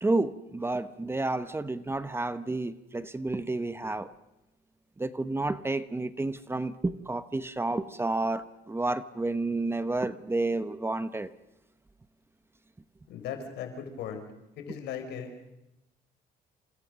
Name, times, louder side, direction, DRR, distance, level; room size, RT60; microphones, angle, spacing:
voice 1, 0.0-4.1 5.0-11.3, right 2 dB, 15° right, 13 dB, 1.0 m, -30 dB
voice 2, 13.1-14.2 14.6-15.3, left 8 dB, 80° left, 5 dB, 4.9 m, -37 dB
28.5 x 26.0 x 6.3 m, 0.91 s
cardioid pair, 110°, 17 cm